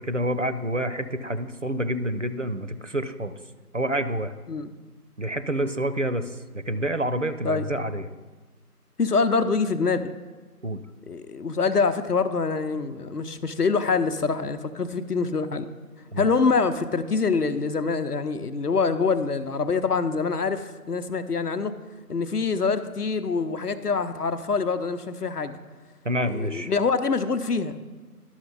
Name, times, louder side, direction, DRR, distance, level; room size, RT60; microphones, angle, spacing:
voice 1, 0.0-3.3 3.7-4.3 5.2-8.1 10.6-10.8 16.1-16.3 26.0-26.7, right 1 dB, 55° right, 11 dB, 0.5 m, -28 dB
voice 2, 9.0-10.1 11.1-15.7 16.2-21.7 22.1-25.5 26.2-27.8, left 4 dB, 75° left, 9 dB, 0.8 m, -25 dB
11.5 x 6.2 x 4.0 m, 1.3 s
figure-of-eight pair, 165°, 47 cm